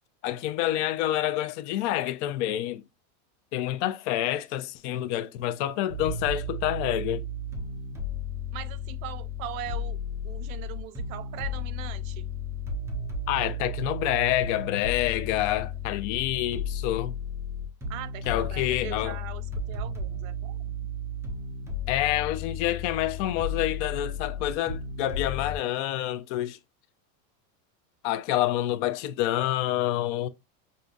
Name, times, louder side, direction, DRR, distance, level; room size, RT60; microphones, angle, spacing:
voice 1, 0.2-2.8 3.5-7.2 13.3-17.1 18.3-19.2 21.9-26.6 28.0-30.3, left 13 dB, 55° left, 0.5 m, -28 dB
sound 1, 5.9-25.6, left 3 dB, 5° right, 0.3 m, -34 dB
voice 2, 8.5-12.3 17.9-20.9, right 14 dB, 65° right, 0.6 m, -41 dB
5.4 x 2.6 x 2.3 m
supercardioid pair, 150°, 44 cm